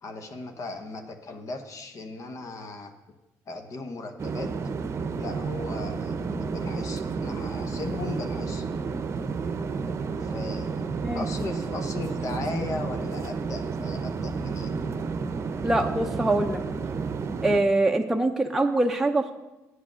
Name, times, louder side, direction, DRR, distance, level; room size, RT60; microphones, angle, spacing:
voice 1, 0.0-2.9 3.5-4.5 5.2-8.7 10.2-14.8, left 3 dB, 55° left, 6 dB, 1.1 m, -37 dB
sound 1, 4.2-17.6, right 5 dB, 45° right, 0.7 m, -31 dB
voice 2, 15.6-16.6 17.4-19.3, right 2 dB, 5° right, 2 dB, 0.7 m, -23 dB
8.3 x 7.9 x 6.2 m, 1.0 s
cardioid pair, 80°, 6 cm